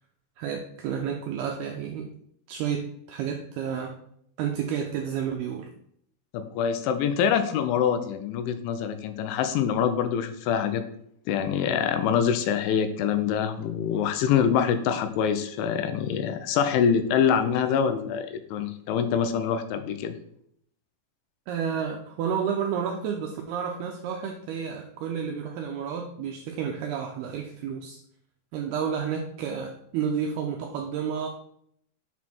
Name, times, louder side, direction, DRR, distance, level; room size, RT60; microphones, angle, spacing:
voice 1, 0.4-2.1 2.5-3.9 4.4-5.7 21.5-28.0 28.5-31.3, right 7 dB, 90° right, 2 dB, 2.3 m, -31 dB
voice 2, 6.3-10.8 11.3-20.1, left 8 dB, 85° left, 9 dB, 3.2 m, -25 dB
7.5 x 6.3 x 4.3 m, 0.69 s
omnidirectional pair, 5.3 m